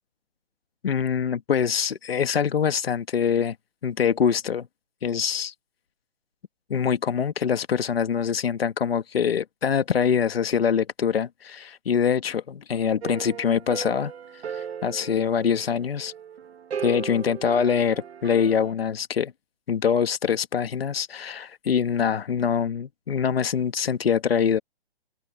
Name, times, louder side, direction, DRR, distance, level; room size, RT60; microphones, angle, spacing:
voice 1, 0.8-3.5 3.8-4.7 5.0-5.5 6.7-14.1 14.5-16.1 16.8-19.3 19.7-24.6, left 7 dB, 65° left, 1.5 m, -24 dB
sound 1, 13.0-18.7, right 7 dB, 80° right, 1.2 m, -37 dB
open air
hypercardioid pair, 170°, 32 cm